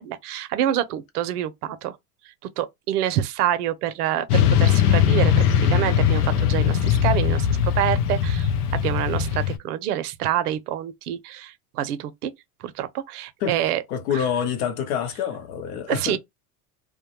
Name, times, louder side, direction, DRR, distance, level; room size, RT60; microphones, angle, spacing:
voice 1, 0.0-2.0 2.6-12.3 12.6-13.8 14.1-14.2 15.9-16.2, right 11 dB, 80° right, 0.6 m, -27 dB
Motorcycle / Traffic noise roadway noise, 4.3-9.6, left 8 dB, 85° left, 0.6 m, -20 dB
voice 2, 13.9-16.2, left 8 dB, 70° left, 1.0 m, -27 dB
2.2 x 2.1 x 2.9 m
hypercardioid pair, 95°, 45 cm